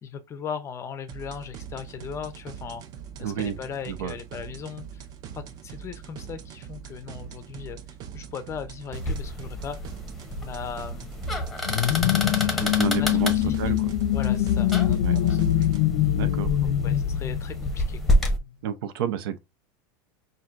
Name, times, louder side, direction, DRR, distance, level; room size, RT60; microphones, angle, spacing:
voice 1, 0.0-2.8 3.2-5.0 5.3-7.8 8.1-9.8 10.4-11.1 12.1-13.1 13.3-13.7 14.1-15.7 16.8-18.2, left 7 dB, 25° left, 0.5 m, -38 dB
sound 1, 1.1-15.8, right 8 dB, 35° right, 0.5 m, -42 dB
voice 2, 3.2-3.6 3.9-4.2 12.6-13.3 13.6-13.9 15.0-15.2 16.1-16.5 18.6-19.4, right 9 dB, 85° right, 0.7 m, -30 dB
sound 2, 8.9-18.4, left 1 dB, ahead, 0.8 m, -29 dB
sound 3, 11.6-18.1, left 12 dB, 75° left, 0.5 m, -24 dB
5.8 x 2.6 x 2.5 m
supercardioid pair, 155°, 12 cm